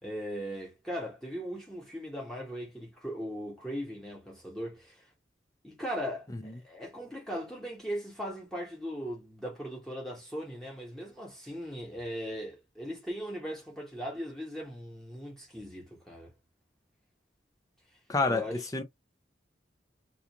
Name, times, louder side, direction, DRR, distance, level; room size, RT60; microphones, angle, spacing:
voice 1, 0.0-5.0 5.6-16.3 18.3-18.6, equal, 5° left, 1.0 m, -39 dB
voice 2, 18.1-18.8, left 3 dB, 20° left, 0.5 m, -28 dB
2.5 x 2.3 x 2.8 m
head